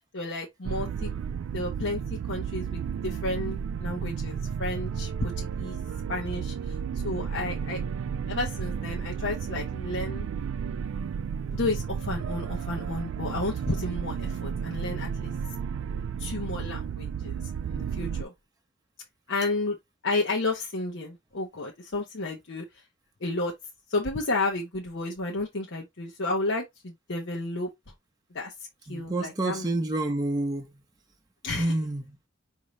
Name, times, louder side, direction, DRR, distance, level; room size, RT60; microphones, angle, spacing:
voice 1, 0.1-1.1 1.5-5.8 6.1-6.8 7.0-7.8 8.3-10.3 11.5-15.3 16.2-17.4 17.7-18.3 19.3-19.8 20.0-22.8 23.2-23.5 23.9-27.7 28.3-28.5 28.9-29.7 31.4-31.7, left 2 dB, 60° left, 0.9 m, -32 dB
sound 1, 0.6-18.2, right 7 dB, 70° right, 0.3 m, -33 dB
voice 2, 28.9-30.7 31.6-32.2, right 2 dB, 20° right, 0.6 m, -28 dB
5.1 x 2.7 x 3.2 m
head